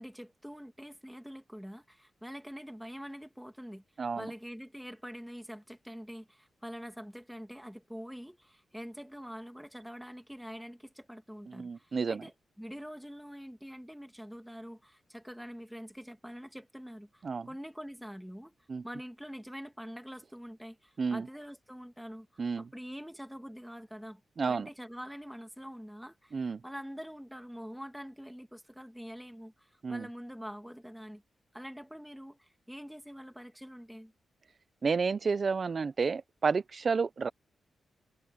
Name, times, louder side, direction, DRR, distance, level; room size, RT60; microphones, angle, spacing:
voice 1, 0.0-3.8 4.2-18.5 18.8-24.2 24.5-31.2 31.5-34.1, equal, ahead, 2.4 m, -45 dB
voice 2, 11.6-12.2 17.2-17.5 18.7-18.8 21.0-21.2 22.4-22.6 24.4-24.7 26.3-26.6 29.8-30.0 34.8-37.3, right 5 dB, 50° right, 0.6 m, -30 dB
cardioid pair, 80°, 0 cm